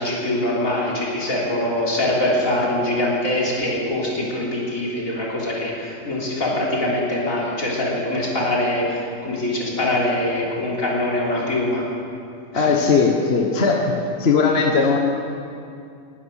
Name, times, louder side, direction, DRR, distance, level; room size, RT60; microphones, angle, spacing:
voice 1, 0.0-11.9 12.5-12.7, left 1 dB, 75° left, -5 dB, 4.0 m, -23 dB
voice 2, 12.5-13.8 14.2-15.0, left 5 dB, 50° left, 1 dB, 1.4 m, -18 dB
19.5 x 11.5 x 6.4 m, 2.5 s
omnidirectional pair, 1.4 m